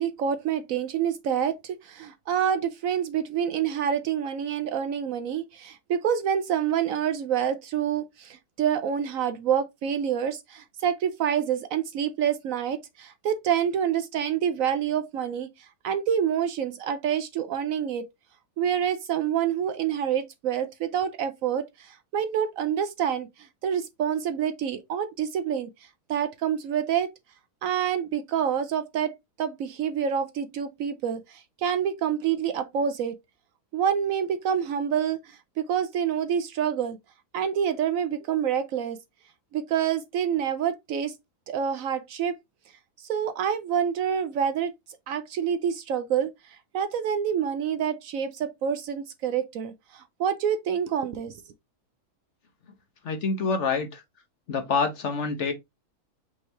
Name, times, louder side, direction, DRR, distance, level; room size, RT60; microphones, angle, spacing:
voice 1, 0.0-18.1 18.6-25.7 26.1-27.1 27.6-33.2 33.7-37.0 37.3-39.0 39.5-41.1 41.5-42.3 43.0-44.7 45.1-51.4, right 8 dB, 70° right, 0.9 m, -27 dB
voice 2, 53.0-54.0 54.5-55.5, left 4 dB, 55° left, 1.1 m, -26 dB
5.3 x 3.1 x 3.3 m
omnidirectional pair, 1.6 m